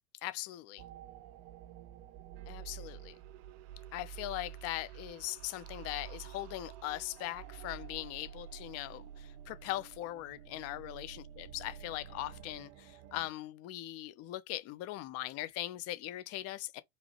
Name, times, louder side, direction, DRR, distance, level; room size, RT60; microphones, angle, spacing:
voice 1, 0.2-0.8 2.5-3.2 3.9-16.8, left 16 dB, 35° left, 0.7 m, -40 dB
sound 1, 0.8-13.3, right 10 dB, 35° right, 0.6 m, -49 dB
4.8 x 3.2 x 3.0 m
hypercardioid pair, 120°, 44 cm